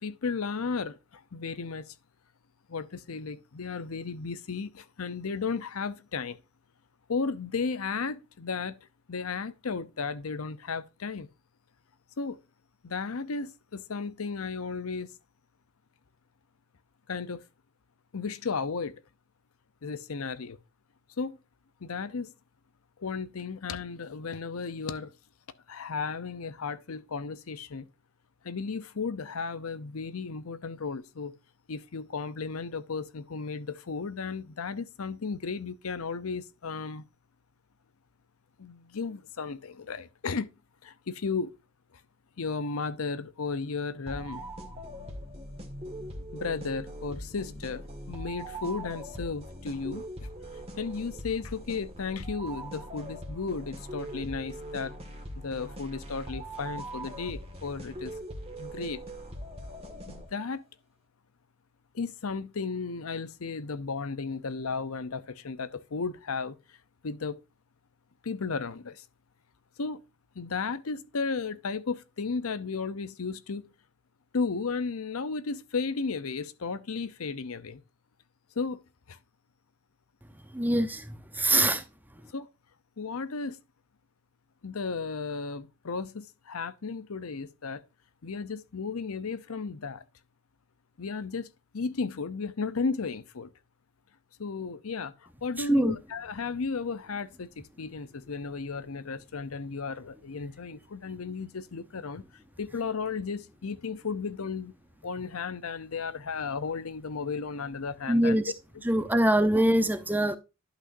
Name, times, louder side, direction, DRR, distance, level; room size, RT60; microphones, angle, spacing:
voice 1, 0.0-1.9 2.7-6.4 7.1-8.8 9.1-11.3 12.2-12.4 12.8-15.1 17.1-17.4 18.1-18.9 19.8-20.6 21.2-21.4 21.8-22.3 23.0-25.1 25.7-27.9 28.4-31.3 31.7-37.0 38.6-40.5 40.8-41.6 42.4-44.4 46.3-50.3 50.8-54.9 55.4-58.1 58.6-59.0 60.0-60.6 61.9-66.8 67.0-67.4 68.2-69.0 69.8-70.0 70.3-73.6 74.3-77.8 78.6-78.8 79.1-79.2 81.5-81.8 82.3-82.5 83.0-83.6 84.6-87.8 88.2-90.0 91.0-91.5 91.7-93.5 94.4-102.2 102.6-104.7 105.0-108.4, left 4 dB, 85° left, 0.7 m, -34 dB
sound 1, 44.1-60.6, right 1 dB, 30° right, 1.8 m, -41 dB
voice 2, 80.5-81.8 95.6-96.0 108.1-108.5 108.8-110.4, right 1 dB, 10° right, 0.8 m, -24 dB
11.5 x 6.1 x 2.6 m
head